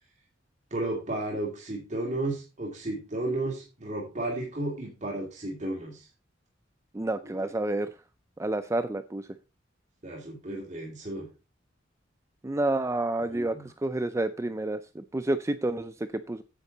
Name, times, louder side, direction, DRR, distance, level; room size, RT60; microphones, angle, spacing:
voice 1, 0.7-6.1 7.2-7.4 10.0-11.3 13.2-13.6, right 2 dB, 40° right, -2 dB, 2.4 m, -33 dB
voice 2, 6.9-7.9 8.4-9.3 12.4-16.4, right 2 dB, 15° right, 10 dB, 0.4 m, -29 dB
9.8 x 8.1 x 3.9 m, 0.30 s
head